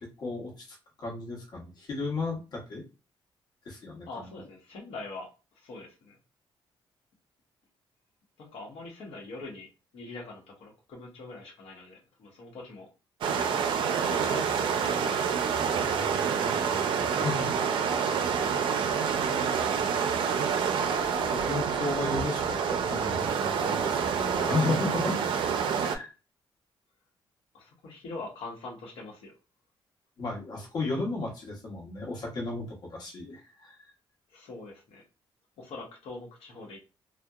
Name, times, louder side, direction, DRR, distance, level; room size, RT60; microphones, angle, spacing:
voice 1, 0.2-2.8 3.6-4.4 15.8-17.5 21.3-25.2 25.8-26.1 30.2-33.8, left 3 dB, 50° left, -2 dB, 0.8 m, -34 dB
voice 2, 4.1-5.3 5.6-6.2 8.4-9.7 9.9-12.9 14.1-15.5 27.5-29.3 34.3-35.0 35.6-36.8, left 3 dB, 85° left, -1 dB, 0.9 m, -43 dB
sound 1, 13.2-26.0, right 6 dB, 65° right, 0.4 m, -27 dB
2.7 x 2.1 x 2.3 m, 0.30 s
cardioid pair, 165°, 9 cm